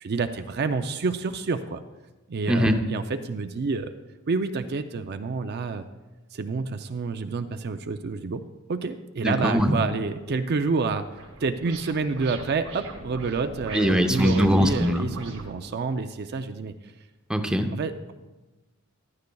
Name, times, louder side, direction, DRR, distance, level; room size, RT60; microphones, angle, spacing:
voice 1, 0.0-1.8 2.3-3.9 4.3-5.9 6.3-16.7 17.7-18.1, right 4 dB, 45° right, 8 dB, 0.4 m, -28 dB
voice 2, 2.5-2.8 9.2-9.7 13.7-15.1 17.3-17.7, equal, 5° right, 5 dB, 0.6 m, -21 dB
sound 1, 10.6-15.5, right 2 dB, 70° right, 1.8 m, -41 dB
14.5 x 12.0 x 2.3 m, 1.1 s
head